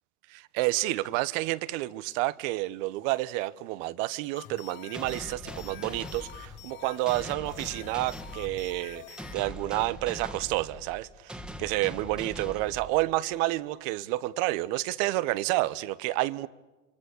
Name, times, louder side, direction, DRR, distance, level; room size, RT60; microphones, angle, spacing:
voice 1, 0.3-16.5, right 18 dB, 55° right, 1.2 m, -30 dB
sound 1, 4.3-9.4, left 13 dB, 45° left, 2.3 m, -47 dB
sound 2, 4.9-13.4, equal, ahead, 2.1 m, -42 dB
28.0 x 24.5 x 8.4 m
hypercardioid pair, 100°, 44 cm